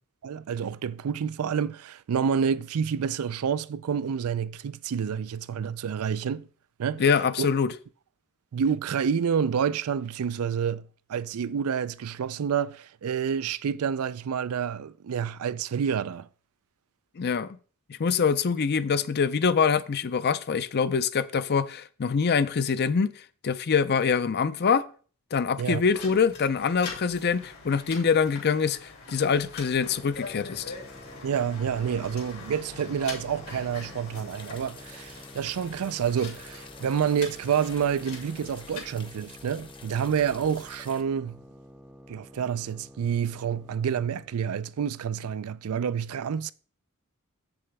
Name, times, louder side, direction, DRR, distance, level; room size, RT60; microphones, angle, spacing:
voice 1, 0.2-6.5 6.8-7.0 7.4-7.5 8.5-16.3 25.6-25.8 31.2-41.4 42.1-46.5, right 7 dB, 80° right, 0.4 m, -28 dB
voice 2, 7.0-7.7 17.2-17.6 17.9-24.8 25.3-30.7, left 6 dB, 50° left, 0.5 m, -25 dB
sound 1, 25.9-38.9, left 4 dB, 80° left, 2.7 m, -43 dB
sound 2, 29.9-44.4, equal, 5° right, 0.4 m, -50 dB
sound 3, 34.3-41.0, left 4 dB, 25° left, 0.8 m, -49 dB
7.8 x 6.9 x 3.5 m
head